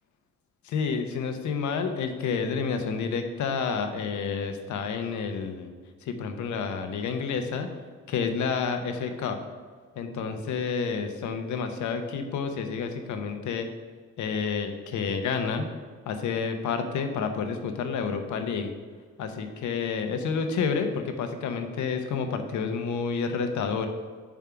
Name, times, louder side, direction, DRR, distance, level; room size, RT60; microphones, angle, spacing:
voice 1, 0.6-5.7 6.0-7.7 8.1-9.4 10.0-13.7 14.2-15.7 16.1-18.7 19.2-23.9, left 5 dB, 75° left, 6 dB, 0.9 m, -29 dB
7.3 x 3.6 x 5.8 m, 1.6 s
cardioid pair, 90°, 30 cm